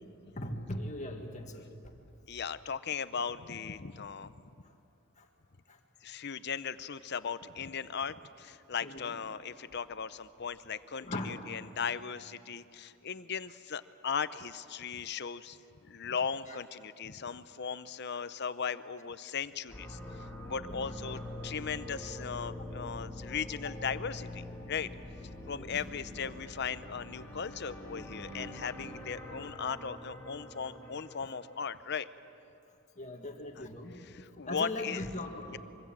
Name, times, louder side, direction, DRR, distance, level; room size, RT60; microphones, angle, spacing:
voice 1, 0.4-1.7 5.2-5.3 5.7-5.8 8.8-9.1 11.0-11.7 16.5-16.6 18.1-18.2 20.1-20.2 20.7-20.8 25.4-25.8 33.0-34.1 34.5-35.6, left 1 dB, 35° left, 3 dB, 1.9 m, -40 dB
voice 2, 2.3-4.4 6.0-15.6 15.9-24.9 25.5-32.1 33.6-33.7 34.0-35.1 35.5-35.6, left 6 dB, 50° left, 14 dB, 0.7 m, -38 dB
sound 1, 19.7-31.6, left 1 dB, 10° left, 3.3 m, -44 dB
25.5 x 24.0 x 7.6 m, 2.8 s
head